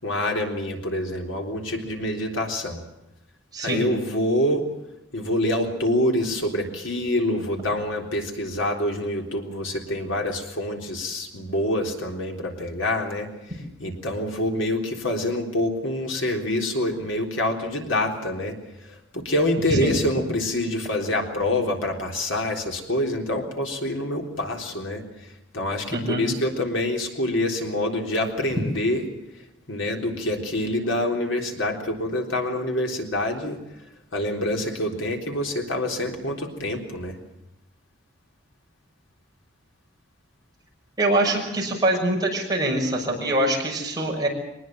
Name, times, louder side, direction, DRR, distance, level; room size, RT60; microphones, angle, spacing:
voice 1, 0.0-2.8 3.6-4.7 5.1-18.6 18.9-25.0 25.5-29.0 29.7-33.6 34.1-37.2, left 1 dB, 75° left, 2 dB, 3.8 m, -26 dB
voice 2, 3.5-3.9 19.7-19.9 25.9-26.2 41.0-44.3, right 1 dB, 20° right, -1 dB, 6.3 m, -24 dB
23.5 x 20.0 x 7.6 m, 0.90 s
head